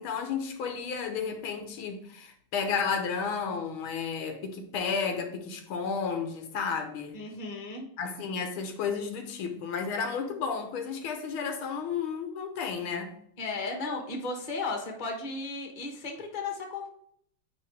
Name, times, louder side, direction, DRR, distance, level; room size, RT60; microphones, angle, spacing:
voice 1, 0.0-7.2 8.0-13.2, left 6 dB, 85° left, 1.7 m, -32 dB
voice 2, 7.1-7.8 13.4-16.9, left 3 dB, 30° left, 1.0 m, -35 dB
9.3 x 3.1 x 3.3 m
omnidirectional pair, 2.2 m